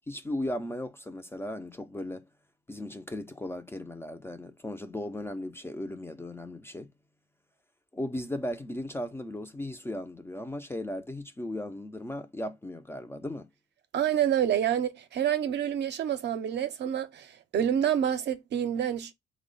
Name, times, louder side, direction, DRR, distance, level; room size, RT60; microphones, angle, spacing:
voice 1, 0.1-2.3 2.7-6.9 7.9-13.5, left 1 dB, 10° left, 0.3 m, -36 dB
voice 2, 13.9-19.1, right 9 dB, 60° right, 0.5 m, -28 dB
3.0 x 2.0 x 3.8 m
cardioid pair, 90°, 20 cm